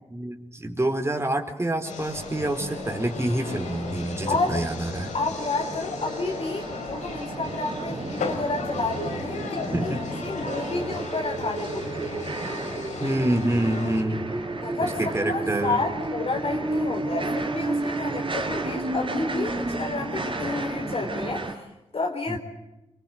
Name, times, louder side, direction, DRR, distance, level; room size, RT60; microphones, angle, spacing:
voice 1, 0.1-5.1 9.7-10.0 13.0-14.3 14.8-15.8 22.3-22.4, right 1 dB, 20° right, 4 dB, 4.5 m, -27 dB
sound 1, 1.8-14.0, left 4 dB, 75° left, 3.5 m, -36 dB
sound 2, 2.0-21.5, right 2 dB, 45° right, 4.9 m, -32 dB
voice 2, 4.3-4.6 5.1-9.9 10.2-12.2 14.6-21.7 21.9-22.4, left 3 dB, 55° left, 1 dB, 4.6 m, -30 dB
24.5 x 22.5 x 8.0 m, 0.95 s
supercardioid pair, 40°, 12 cm